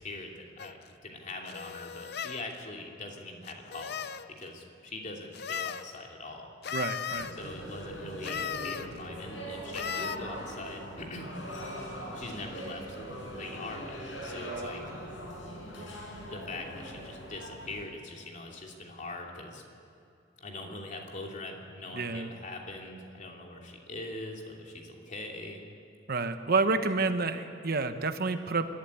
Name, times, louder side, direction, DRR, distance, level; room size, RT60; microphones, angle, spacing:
voice 1, 0.0-6.6 7.3-11.4 12.1-13.0 13.4-14.8 16.3-19.6 20.4-25.6, left 2 dB, 45° left, 1 dB, 2.8 m, -42 dB
sound 1, 0.6-0.7 1.5-2.4 3.4-4.3 5.3-5.8 6.6-7.3 8.2-8.9 9.7-10.2, left 8 dB, 60° left, 0.7 m, -36 dB
voice 2, 6.7-7.3 21.9-22.3 26.1-28.7, right 3 dB, 55° right, 9 dB, 1.1 m, -29 dB
sound 2, 7.1-17.9, equal, 90° left, 5.5 m, -41 dB
25.0 x 12.5 x 9.8 m, 2.6 s
head